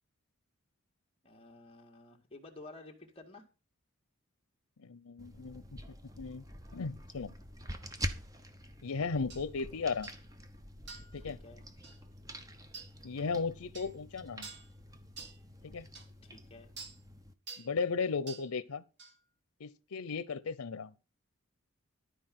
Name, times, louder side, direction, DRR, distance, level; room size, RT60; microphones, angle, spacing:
voice 1, 1.2-3.5 11.1-11.6 16.2-16.7, left 2 dB, 25° left, 1.8 m, -52 dB
voice 2, 4.8-5.8 6.2-6.4 6.7-7.3 8.8-10.1 11.1-11.4 13.0-14.5 15.6-15.9 17.6-18.8 19.6-20.9, left 4 dB, 85° left, 0.6 m, -36 dB
sound 1, 5.2-17.3, equal, 15° right, 0.9 m, -46 dB
sound 2, 9.3-9.4 10.0-10.2 10.9-11.2 11.8-12.0 12.7-12.9 13.7-13.9 14.4-14.7 15.2-15.4 15.9-16.1 16.8-17.0 17.5-17.7 18.3-18.5 19.0-19.1, right 4 dB, 50° right, 1.9 m, -47 dB
12.0 x 4.8 x 7.6 m
head